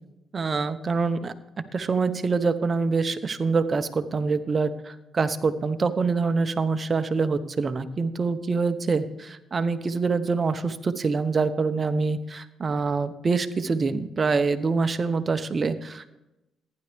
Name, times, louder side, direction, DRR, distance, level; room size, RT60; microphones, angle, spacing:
voice 1, 0.3-1.3 1.7-16.2, right 4 dB, 35° right, 11 dB, 0.8 m, -25 dB
15.0 x 10.5 x 3.4 m, 0.94 s
cardioid pair, 90°, 0 cm